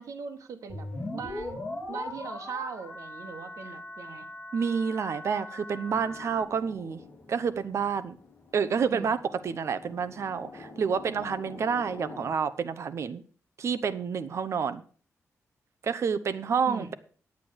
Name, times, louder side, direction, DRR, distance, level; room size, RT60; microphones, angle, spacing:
voice 1, 0.0-4.3 8.9-9.1 16.7-16.9, right 6 dB, 90° right, 7 dB, 1.5 m, -40 dB
sound 1, 0.7-6.4, left 2 dB, 20° left, 3.5 m, -39 dB
voice 2, 4.5-7.0 7.3-8.2 8.5-9.2 9.4-13.2 13.6-14.8 15.8-16.9, right 6 dB, 60° right, 12 dB, 0.8 m, -29 dB
sound 2, 5.9-12.3, left 3 dB, 35° left, 2.2 m, -48 dB
9.8 x 8.3 x 6.4 m, 0.42 s
wide cardioid pair, 140°, 5 cm